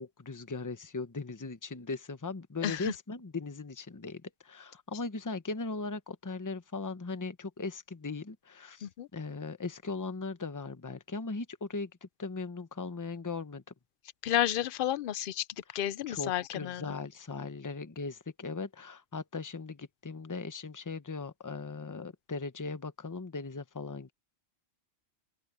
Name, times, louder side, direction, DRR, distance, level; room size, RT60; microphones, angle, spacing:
voice 1, 0.0-13.6 15.7-24.1, left 3 dB, 20° left, 0.8 m, -39 dB
voice 2, 2.6-2.9 8.8-9.1 14.2-15.5 15.7-16.9, left 12 dB, 60° left, 0.6 m, -31 dB
open air
omnidirectional pair, 1.1 m